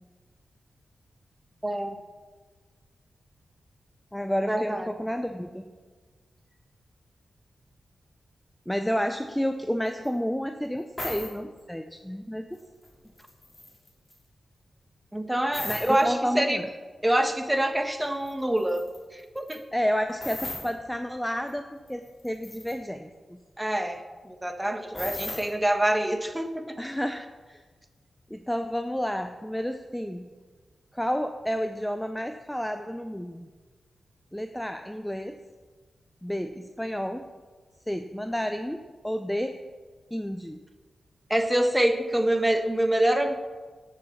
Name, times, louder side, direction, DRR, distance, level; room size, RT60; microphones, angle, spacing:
voice 1, 1.6-2.0 4.5-4.9 15.1-16.6 17.0-19.6 23.6-26.8 41.3-43.3, right 1 dB, 10° right, 6 dB, 1.3 m, -26 dB
voice 2, 4.1-5.7 8.7-12.6 15.6-16.7 19.7-23.4 26.8-27.6 28.3-30.3 30.9-33.5 34.3-35.3 36.2-37.2 37.9-39.5 40.1-40.6, equal, 5° left, 7 dB, 0.6 m, -31 dB
sound 1, 10.0-10.1 11.0-11.3 12.5-12.9 13.2-14.1 15.5-16.0 18.3-18.4 18.6-19.0 19.4-19.6 20.2-20.7 21.5-21.6 21.9-22.7 24.9-25.5, left 1 dB, 25° left, 3.0 m, -36 dB
10.5 x 6.8 x 7.2 m, 1.4 s
cardioid pair, 65°, 0 cm